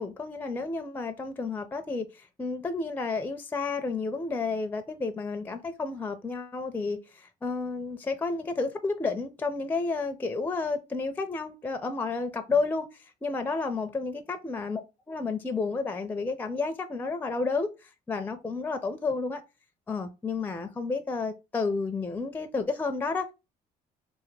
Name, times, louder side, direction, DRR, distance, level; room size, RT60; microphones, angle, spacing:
voice 1, 0.0-12.9 13.2-14.8 15.1-19.4 19.9-23.3, left 4 dB, 10° left, 0.4 m, -31 dB
3.3 x 2.1 x 3.1 m
cardioid pair, 110°, 17 cm